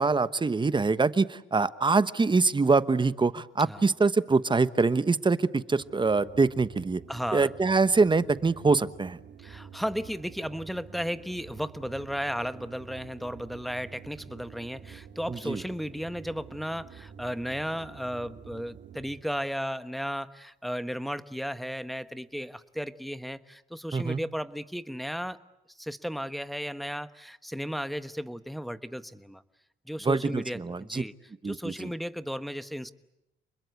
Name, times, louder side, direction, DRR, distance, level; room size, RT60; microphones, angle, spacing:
voice 1, 0.0-7.0 7.3-9.2 15.3-15.6 23.9-24.2 30.0-31.0 31.4-31.9, right 4 dB, 25° right, 14 dB, 1.1 m, -24 dB
sound 1, 5.8-19.4, right 7 dB, 65° right, 2.6 m, -48 dB
voice 2, 7.1-7.5 9.4-25.4 25.8-29.4 29.9-31.1 31.4-32.9, equal, ahead, 11 dB, 1.2 m, -34 dB
29.5 x 21.5 x 8.3 m, 0.87 s
cardioid pair, 90°, 20 cm